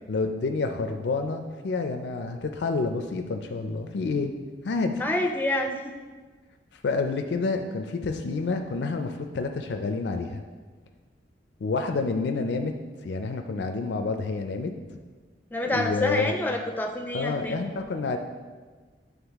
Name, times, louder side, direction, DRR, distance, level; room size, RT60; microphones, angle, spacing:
voice 1, 0.1-4.3 4.6-5.0 6.8-10.4 11.6-12.7 13.0-14.7 15.7-16.3 17.1-18.2, left 3 dB, 80° left, 5 dB, 0.4 m, -28 dB
voice 2, 5.0-6.0 15.5-17.6, left 1 dB, 10° left, 3 dB, 0.4 m, -27 dB
8.9 x 3.5 x 3.5 m, 1.4 s
head